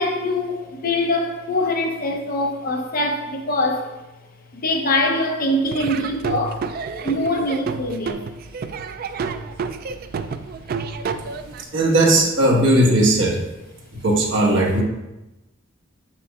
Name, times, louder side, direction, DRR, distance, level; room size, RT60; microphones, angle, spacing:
voice 1, 0.0-3.9 4.5-6.7 7.0-8.2, left 1 dB, 45° left, 3 dB, 0.7 m, -23 dB
Laughter / Drum, 5.7-11.6, right 5 dB, 50° right, 0.3 m, -30 dB
voice 2, 11.7-13.4 14.0-14.8, right 1 dB, 65° right, -2 dB, 1.3 m, -17 dB
7.6 x 6.0 x 2.4 m, 1.0 s
head